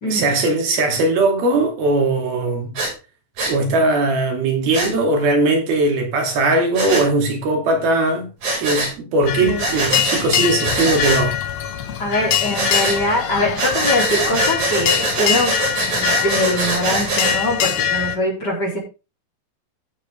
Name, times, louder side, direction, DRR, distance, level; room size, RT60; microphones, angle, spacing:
voice 1, 0.1-2.8 3.5-8.3 8.6-11.4, right 2 dB, 80° right, 4.6 m, -19 dB
Breathing, 2.7-2.9 3.4-3.5 4.7-4.9 6.7-7.0 8.4-8.9 9.6-10.2 10.6-11.2 12.5-13.0 13.6-17.4, right 2 dB, 50° right, 7.2 m, -23 dB
sound 1, 9.2-18.1, left 9 dB, 60° left, 2.0 m, -23 dB
voice 2, 9.4-9.7 12.0-18.8, left 1 dB, 25° left, 4.1 m, -22 dB
15.0 x 7.5 x 3.7 m
omnidirectional pair, 4.3 m